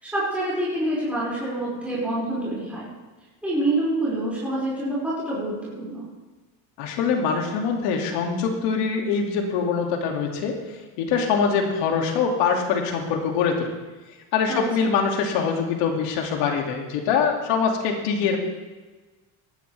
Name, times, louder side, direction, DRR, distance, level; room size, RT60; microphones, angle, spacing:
voice 1, 0.0-2.9 3.4-6.1 14.5-14.6, right 1 dB, 5° right, -9 dB, 6.0 m, -26 dB
voice 2, 6.8-10.5 11.0-13.7 14.3-18.4, left 6 dB, 85° left, 1 dB, 2.7 m, -23 dB
18.5 x 13.5 x 3.5 m, 1.2 s
cardioid pair, 170°, 41 cm